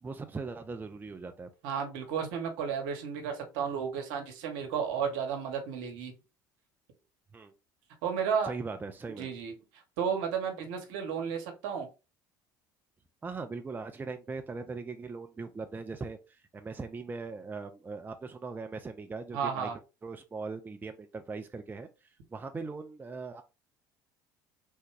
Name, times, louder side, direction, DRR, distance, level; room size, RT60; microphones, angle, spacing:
voice 1, 0.0-1.5 7.3-7.5 8.4-9.3 13.2-19.7 20.0-21.9 22.3-23.4, right 4 dB, 20° right, 0.4 m, -40 dB
voice 2, 1.6-6.1 8.0-8.5 9.2-9.5 10.0-11.9 19.3-19.7, right 7 dB, 70° right, 1.0 m, -33 dB
3.6 x 2.1 x 3.2 m
hypercardioid pair, 65°, 10 cm